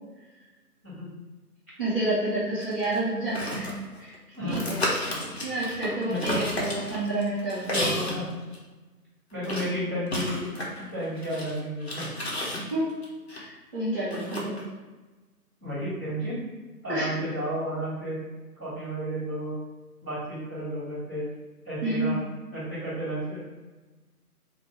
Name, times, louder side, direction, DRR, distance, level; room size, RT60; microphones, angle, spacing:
voice 1, 1.8-3.7 4.0-4.1 4.4-4.8 5.4-8.0 12.7-12.9 13.3-14.5 16.9-17.1 21.8-22.2, right 1 dB, 35° right, -12 dB, 1.0 m, -29 dB
sound 1, 2.6-4.2 4.5-8.2 8.5-8.6 9.4-13.4 14.1-14.6, left 1 dB, 45° left, 0.8 m, -32 dB
voice 2, 4.3-5.0 6.1-6.4 7.7-8.2 9.3-10.5 10.7-12.1 15.6-16.3 16.8-18.2 18.6-19.5 20.0-21.3 21.6-22.2 22.5-23.4, equal, 10° right, -19 dB, 1.4 m, -32 dB
3.0 x 2.6 x 4.0 m, 1.2 s
figure-of-eight pair, 160°, 47 cm